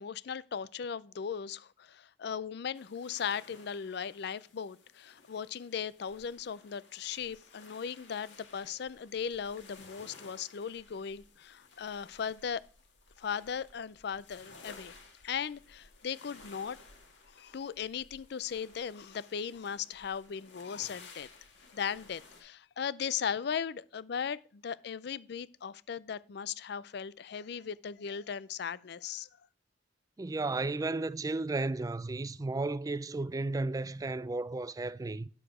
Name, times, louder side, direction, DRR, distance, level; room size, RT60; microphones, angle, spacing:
voice 1, 0.0-12.6 13.2-14.9 15.2-16.8 17.4-21.3 21.7-29.3, left 7 dB, 65° left, 0.4 m, -38 dB
sound 1, 2.7-22.4, left 4 dB, 80° left, 2.1 m, -56 dB
voice 2, 30.2-35.3, right 2 dB, 20° right, 0.3 m, -33 dB
9.9 x 6.8 x 4.9 m
head